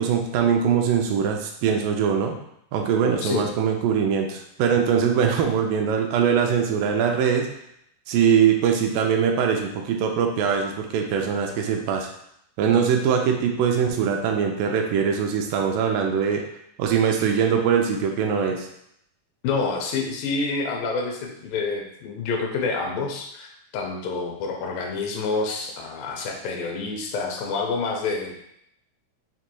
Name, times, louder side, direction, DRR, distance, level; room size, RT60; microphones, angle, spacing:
voice 1, 0.0-2.4 2.7-7.5 8.1-12.1 12.6-16.4 16.8-18.7, right 7 dB, 85° right, 2 dB, 2.2 m, -22 dB
voice 2, 19.4-28.4, left 4 dB, 85° left, 1 dB, 2.4 m, -28 dB
6.3 x 2.9 x 2.2 m, 0.76 s
omnidirectional pair, 3.9 m